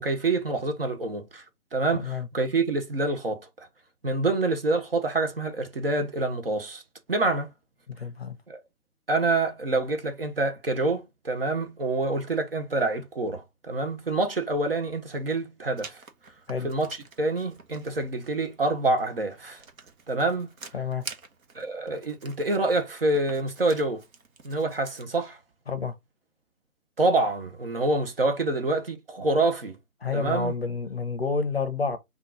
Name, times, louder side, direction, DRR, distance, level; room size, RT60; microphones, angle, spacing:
voice 1, 0.0-1.4 1.7-3.7 4.0-6.8 7.1-7.5 8.5-8.6 9.1-16.0 16.6-19.6 20.1-20.5 21.5-24.0 24.4-25.4 27.0-29.8 30.1-30.5, right 2 dB, 40° right, 0.7 m, -27 dB
voice 2, 1.9-2.3 7.9-8.4 16.5-16.7 20.7-21.0 25.7-25.9 30.0-32.0, left 5 dB, 45° left, 0.6 m, -29 dB
Writing, 15.8-25.1, right 4 dB, 65° right, 1.0 m, -48 dB
3.6 x 2.4 x 3.7 m
figure-of-eight pair, 150°, 45 cm